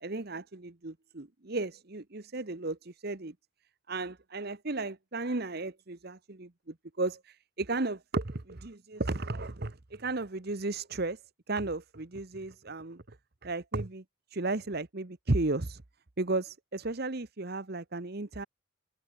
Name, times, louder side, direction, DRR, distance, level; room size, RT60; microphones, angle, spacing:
voice 1, 0.0-3.3 3.9-11.2 11.5-13.2 13.4-14.0 14.3-15.8 16.2-18.4, right 2 dB, 45° right, 1.1 m, -34 dB
head